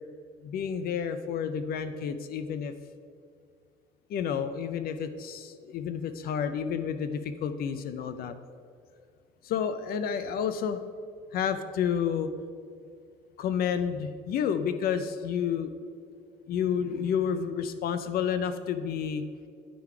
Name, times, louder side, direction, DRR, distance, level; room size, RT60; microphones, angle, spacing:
voice 1, 0.4-2.7 4.1-8.3 9.4-10.8 11.3-12.3 13.4-15.7 16.5-19.2, left 7 dB, 65° left, 11 dB, 0.5 m, -30 dB
10.5 x 3.8 x 4.6 m, 2.3 s
cardioid pair, 110°, 17 cm